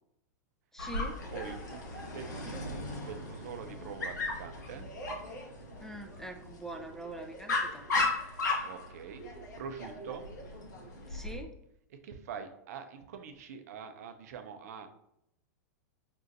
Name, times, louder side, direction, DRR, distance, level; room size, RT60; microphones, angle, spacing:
voice 1, 0.7-1.2 5.8-8.1 11.1-11.5, right 2 dB, 5° left, 4 dB, 0.4 m, -43 dB
Dog, 0.8-11.4, left 3 dB, 80° left, 1.1 m, -36 dB
voice 2, 1.3-4.9 8.6-9.2 9.6-10.3 11.9-14.9, right 7 dB, 65° right, 7 dB, 0.6 m, -44 dB
5.4 x 2.5 x 2.6 m, 0.76 s
hypercardioid pair, 105°, 9 cm